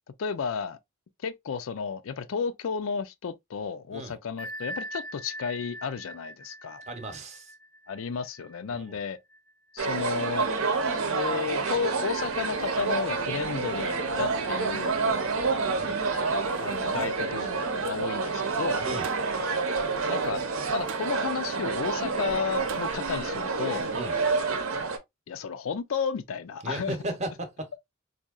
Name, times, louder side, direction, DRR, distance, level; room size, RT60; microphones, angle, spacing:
voice 1, 0.2-0.8 1.2-6.8 7.9-9.2 9.7-10.5 11.1-15.5 16.6-18.8 20.1-20.4 20.7-23.9 25.3-27.0, left 6 dB, 75° left, 0.4 m, -33 dB
Bell, 4.4-9.8, equal, 5° left, 0.6 m, -42 dB
voice 2, 6.9-7.5 8.7-9.0 15.8-16.0 18.8-19.1 23.9-24.2 26.6-27.8, right 1 dB, 35° right, 0.8 m, -36 dB
sound 1, 9.8-25.0, right 4 dB, 90° right, 0.8 m, -28 dB
sound 2, 12.1-23.9, right 5 dB, 65° right, 0.4 m, -42 dB
4.1 x 2.7 x 2.3 m
head